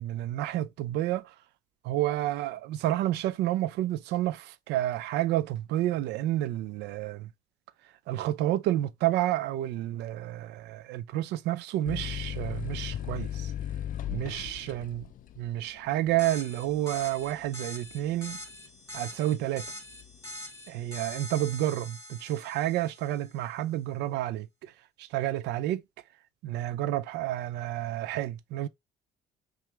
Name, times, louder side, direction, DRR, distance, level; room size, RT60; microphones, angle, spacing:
voice 1, 0.0-1.3 1.8-7.3 8.1-13.5 14.1-15.1 15.4-18.4 18.9-19.7 20.7-24.7 25.0-25.8 26.4-28.7, right 14 dB, 85° right, 0.5 m, -30 dB
sound 1, 11.9-19.1 19.6-20.3, left 10 dB, 55° left, 0.4 m, -37 dB
sound 2, 16.2-23.3, equal, 15° left, 2.1 m, -44 dB
5.9 x 2.4 x 3.2 m
cardioid pair, 110°, 17 cm